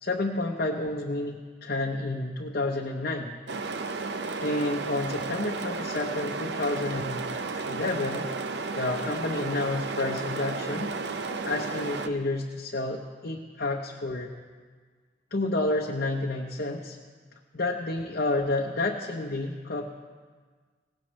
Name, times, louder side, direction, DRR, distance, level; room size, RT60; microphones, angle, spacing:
voice 1, 0.0-3.4 4.4-7.3 7.7-8.3 8.7-10.9 11.4-14.3 15.3-17.0 17.5-19.9, left 2 dB, 60° left, 0 dB, 0.9 m, -30 dB
sound 1, 3.5-12.1, right 3 dB, 70° right, 0.6 m, -33 dB
18.0 x 16.5 x 3.2 m, 1.5 s
head